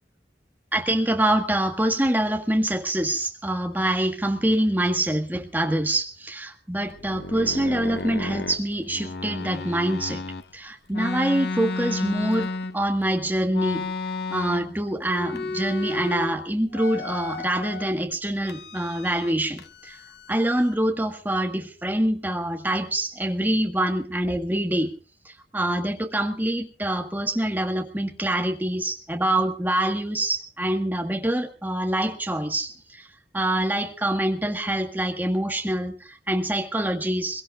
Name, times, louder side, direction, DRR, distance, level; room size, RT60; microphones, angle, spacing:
voice 1, 0.7-10.2 10.5-13.9 14.3-20.0 20.3-24.9 25.3-33.1 33.3-37.4, right 1 dB, 10° right, 2 dB, 1.8 m, -25 dB
sound 1, 6.9-10.4 10.9-13.0 13.5-14.8 15.0-16.4 16.7-17.9 18.4-19.3 19.6-20.8, left 3 dB, 70° left, 1.0 m, -33 dB
25.0 x 22.5 x 2.4 m, 0.38 s
head